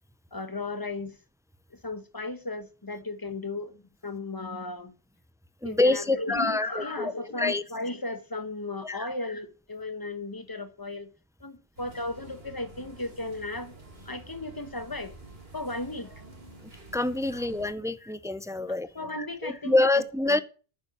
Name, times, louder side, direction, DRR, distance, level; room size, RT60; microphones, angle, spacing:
voice 1, 0.3-1.2 1.7-4.9 5.6-11.1 11.4-13.8 14.0-15.1 15.5-16.1 17.3-17.7 18.0-18.1 18.6-20.4, left 2 dB, 20° left, 1.2 m, -36 dB
voice 2, 5.6-7.1 7.4-7.6 8.8-9.1 16.9-18.9 19.4-20.4, left 2 dB, 5° right, 0.3 m, -26 dB
sound 1, 11.7-17.7, right 2 dB, 65° right, 3.4 m, -49 dB
9.5 x 7.0 x 8.0 m
omnidirectional pair, 1.1 m